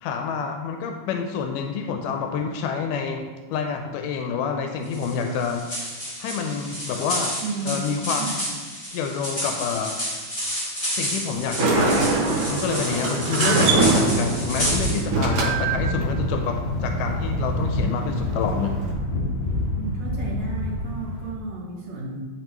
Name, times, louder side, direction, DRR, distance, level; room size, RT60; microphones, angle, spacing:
voice 1, 0.0-5.8 6.2-7.4 7.7-8.5 8.9-10.0 11.0-12.1 12.5-18.8, left 6 dB, 85° left, 4 dB, 2.1 m, -28 dB
sound 1, 4.9-15.0, equal, 15° left, 1.3 m, -30 dB
voice 2, 7.4-8.3 19.8-22.3, right 3 dB, 60° right, -6 dB, 3.1 m, -33 dB
Sliding door, 11.3-18.9, right 3 dB, 80° right, 2.4 m, -24 dB
sound 2, 14.4-21.3, left 1 dB, 50° left, 1.6 m, -27 dB
8.9 x 5.7 x 3.0 m, 1.4 s
omnidirectional pair, 3.7 m